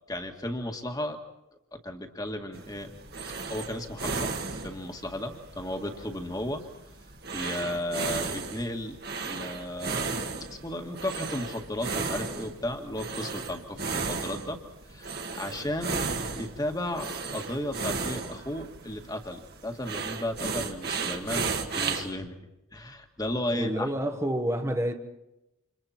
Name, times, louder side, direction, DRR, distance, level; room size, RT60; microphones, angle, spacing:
voice 1, 0.1-1.2 1.7-2.9 3.5-6.6 7.3-10.1 10.5-14.6 14.9-16.0 16.3-22.4 22.7-23.9, left 1 dB, 15° left, 1.9 m, -34 dB
sound 1, 2.5-22.1, right 4 dB, 45° right, 1.9 m, -35 dB
voice 2, 23.5-24.9, equal, 15° right, 1.4 m, -28 dB
30.0 x 27.5 x 4.4 m
head